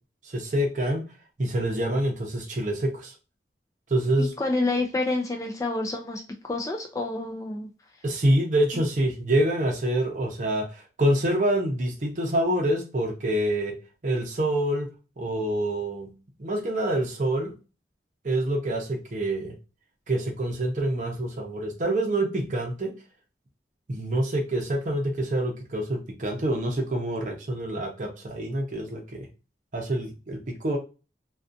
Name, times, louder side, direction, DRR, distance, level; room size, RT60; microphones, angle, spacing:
voice 1, 0.2-1.0 1.4-3.1 3.9-4.3 8.0-13.7 14.0-14.9 15.2-16.1 16.4-17.5 18.2-19.6 20.1-22.9 23.9-29.3 29.7-30.8, right 1 dB, 45° right, 2 dB, 0.6 m, -26 dB
voice 2, 4.4-7.7, left 2 dB, 20° left, 1 dB, 0.3 m, -28 dB
2.4 x 2.3 x 2.5 m, 0.32 s
head